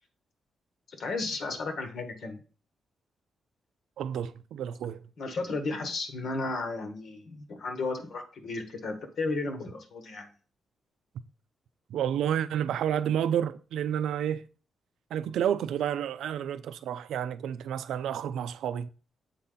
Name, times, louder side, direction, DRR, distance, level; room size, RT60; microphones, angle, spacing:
voice 1, 0.9-2.4 5.2-10.3, left 3 dB, 65° left, 1.4 m, -34 dB
voice 2, 4.0-5.0 11.9-14.4 15.1-18.9, right 9 dB, 90° right, 0.4 m, -30 dB
7.2 x 4.1 x 3.9 m
cardioid pair, 95°, 0 cm